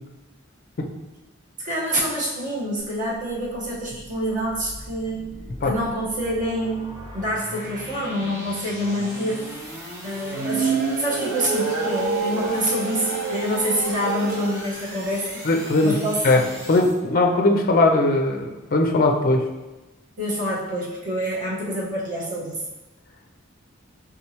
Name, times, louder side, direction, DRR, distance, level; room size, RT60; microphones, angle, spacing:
voice 1, 1.6-5.3 5.6-9.4 10.0-15.4 15.8-16.4 20.2-22.6, equal, 40° right, -6 dB, 1.2 m, -26 dB
sound 1, 2.8-17.0, equal, 15° right, 0.8 m, -39 dB
sound 2, 10.2-14.6, right 4 dB, 65° right, 0.5 m, -27 dB
voice 2, 15.4-16.0 16.2-16.4 16.7-19.5, left 2 dB, 45° left, 3 dB, 0.4 m, -19 dB
4.6 x 3.7 x 2.9 m, 1.1 s
head